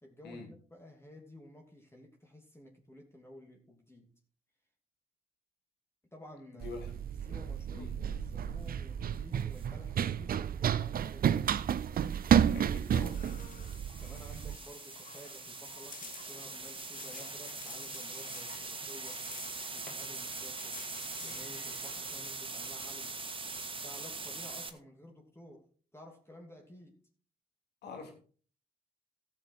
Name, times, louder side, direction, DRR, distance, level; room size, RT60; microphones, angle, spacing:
voice 1, 0.0-4.1 6.1-6.8 7.2-11.5 14.0-19.2 19.7-20.8 21.2-23.2 23.8-25.7 25.9-27.0, left 1 dB, 15° left, 1 dB, 2.9 m, -53 dB
voice 2, 6.5-6.9 7.7-7.9 12.5-13.2 27.8-28.2, left 4 dB, 70° left, 3 dB, 3.2 m, -45 dB
Run, 6.6-14.6, right 9 dB, 55° right, 0.6 m, -31 dB
sound 1, 9.4-9.7 11.8-24.7, right 3 dB, 30° right, 1.7 m, -43 dB
sound 2, 12.9-22.3, left 6 dB, 50° left, 1.5 m, -51 dB
14.0 x 7.2 x 4.6 m, 0.43 s
hypercardioid pair, 40°, 18 cm